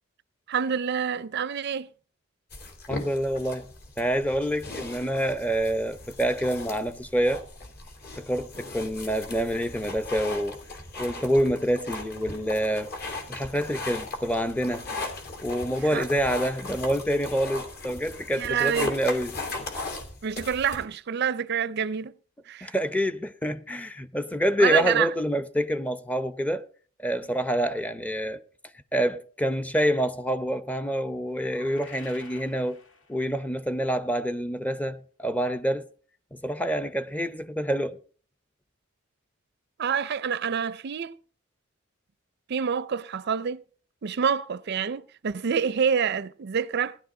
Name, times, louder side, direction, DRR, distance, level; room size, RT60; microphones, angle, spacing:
voice 1, 0.5-1.9 15.9-16.1 18.3-19.0 20.2-22.1 22.5-22.7 24.6-25.1 39.8-41.1 42.5-43.6 44.0-47.0, right 7 dB, 55° right, 0.5 m, -27 dB
sound 1, 2.5-20.8, left 2 dB, 50° left, 3.0 m, -38 dB
voice 2, 2.9-7.4 8.2-10.6 11.0-12.9 13.3-14.9 15.4-19.4 22.6-26.6 27.0-28.4 28.9-32.8 33.1-35.9 36.3-38.0, equal, 5° left, 0.7 m, -27 dB
sound 2, 31.3-33.5, left 3 dB, 65° left, 2.1 m, -50 dB
17.5 x 11.0 x 3.8 m
head